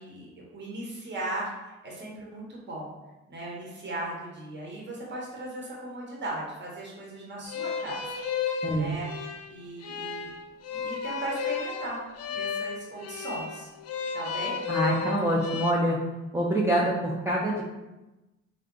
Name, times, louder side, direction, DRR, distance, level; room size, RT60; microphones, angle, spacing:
voice 1, 0.0-2.9 3.3-8.1 8.4-9.1 9.5-10.3 10.7-12.0 12.3-13.7 14.1-14.6, right 2 dB, 35° right, -3 dB, 1.1 m, -37 dB
sound 1, 7.5-15.7, left 6 dB, 55° left, 0.5 m, -33 dB
voice 2, 8.6-9.0 14.7-16.0 16.3-17.6, right 1 dB, 10° right, -5 dB, 0.6 m, -25 dB
3.7 x 2.3 x 3.7 m, 1.1 s
cardioid pair, 90°, 30 cm